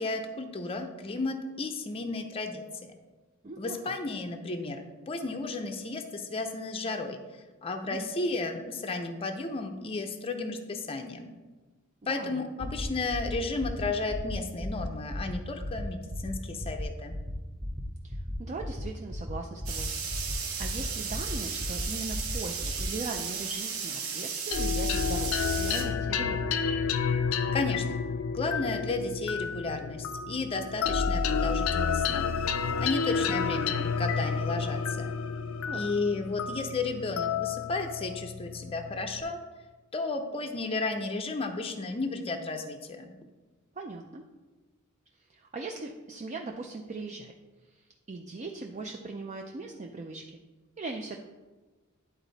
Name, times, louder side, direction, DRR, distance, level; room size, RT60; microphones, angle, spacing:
voice 1, 0.0-2.9 3.6-7.2 7.6-11.3 12.1-17.1 27.5-28.1 28.3-32.3 32.8-35.1 35.7-39.4 39.9-43.1, left 3 dB, 25° left, 5 dB, 0.5 m, -33 dB
voice 2, 3.4-3.9 7.9-8.1 12.1-12.4 18.0-19.9 20.6-26.5 35.7-35.8 43.8-44.2 45.2-47.3 47.6-50.4 50.8-51.2, right 3 dB, 35° right, 2 dB, 0.4 m, -39 dB
sound 1, 12.6-12.8 13.1-13.3 13.6-13.8 14.1-14.3 14.6-14.8 15.1-15.3 15.6-15.8 16.1-16.3 16.6-16.8 17.1-17.3 17.6-17.8 18.1-18.3 18.6-18.8 19.1-19.3 19.6-19.8 20.1-20.3 20.6-20.8 21.1-21.3 21.6-21.8 22.1-22.3 22.6-22.8, left 1 dB, 10° right, 0.9 m, -36 dB
sound 2, 19.7-25.8, right 6 dB, 75° right, 1.0 m, -35 dB
sound 3, 24.5-39.2, left 5 dB, 75° left, 0.4 m, -30 dB
10.0 x 4.0 x 4.0 m, 1.2 s
head